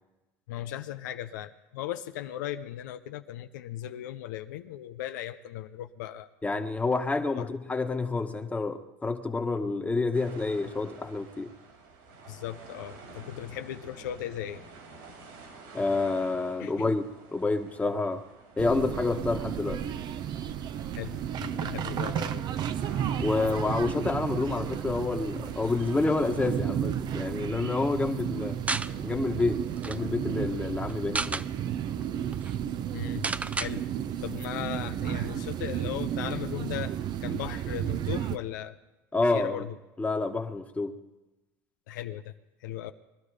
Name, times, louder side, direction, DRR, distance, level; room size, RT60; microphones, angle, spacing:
voice 1, 0.5-6.3 7.3-7.4 12.3-14.6 16.6-16.9 21.0-22.5 32.9-33.3 33.6-33.8 34.2-36.9 37.2-38.8 39.3-39.7 41.9-42.3 42.6-42.9, left 12 dB, 80° left, 8 dB, 0.7 m, -37 dB
voice 2, 6.4-11.5 15.7-18.2 18.6-19.8 23.2-28.6 29.0-31.4 39.1-39.7 40.0-40.9, left 3 dB, 15° left, 5 dB, 1.5 m, -28 dB
sound 1, 10.1-26.5, right 3 dB, 85° right, 5.1 m, -50 dB
sound 2, 18.6-38.4, right 10 dB, 50° right, 0.8 m, -33 dB
sound 3, 28.7-28.9 29.4-29.5 29.7-30.0 30.9-31.5 32.0-32.1 32.3-32.5 33.2-33.7, right 3 dB, 15° right, 0.5 m, -31 dB
22.0 x 12.0 x 5.0 m, 1.0 s
hypercardioid pair, 90°, 10 cm